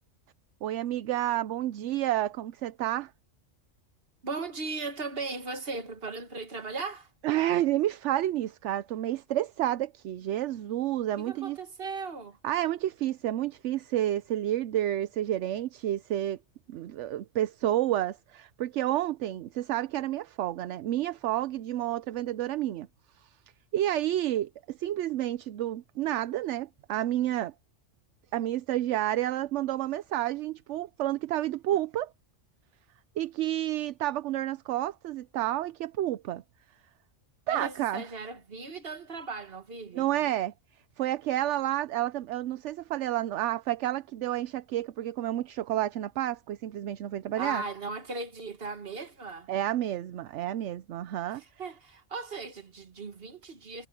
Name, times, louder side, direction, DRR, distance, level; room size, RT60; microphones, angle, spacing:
voice 1, 0.6-3.1 7.2-11.6 12.4-16.4 16.7-22.9 23.7-27.5 28.3-32.1 33.2-36.4 37.5-38.1 39.9-40.5 41.0-47.6 49.5-51.4, right 13 dB, 75° right, 0.9 m, -30 dB
voice 2, 4.2-7.1 11.2-12.4 37.5-40.1 47.3-49.5 51.4-53.9, right 3 dB, 50° right, 1.8 m, -37 dB
omnidirectional pair, 1.3 m